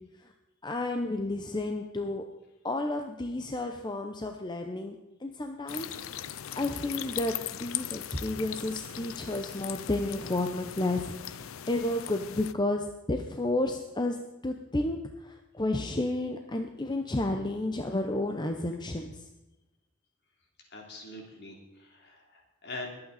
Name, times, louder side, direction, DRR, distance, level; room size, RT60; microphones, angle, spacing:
voice 1, 0.6-2.2 2.6-5.0 5.2-5.9 6.5-14.2 14.4-19.3, left 2 dB, 20° left, 4 dB, 0.7 m, -31 dB
sound 1, 5.7-12.5, left 11 dB, 75° left, 0.5 m, -39 dB
voice 2, 20.6-22.9, left 2 dB, 55° left, 1 dB, 3.0 m, -43 dB
22.0 x 8.8 x 4.1 m, 0.99 s
head